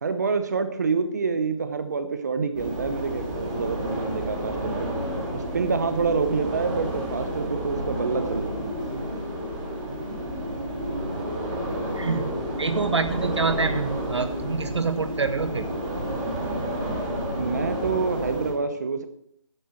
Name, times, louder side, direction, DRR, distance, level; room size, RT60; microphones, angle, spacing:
voice 1, 0.0-4.7 5.3-8.7 17.3-19.1, right 4 dB, 30° right, 10 dB, 0.9 m, -27 dB
sound 1, 2.5-18.5, equal, 15° right, 2.0 m, -30 dB
voice 2, 12.0-12.3 12.6-15.7, right 4 dB, 60° right, 11 dB, 0.5 m, -26 dB
10.0 x 9.9 x 4.5 m, 0.69 s
figure-of-eight pair, 165°, 17 cm